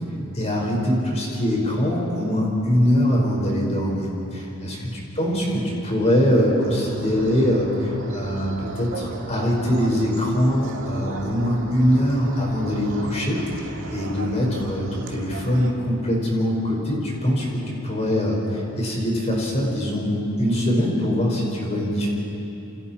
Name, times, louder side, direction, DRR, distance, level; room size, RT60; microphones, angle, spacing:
voice 1, 0.3-4.8 5.2-13.4 13.9-22.1, equal, 30° left, -2 dB, 5.3 m, -22 dB
sound 1, 6.6-15.7, right 2 dB, 65° right, 2.0 m, -37 dB
29.0 x 28.0 x 4.5 m, 3.0 s
head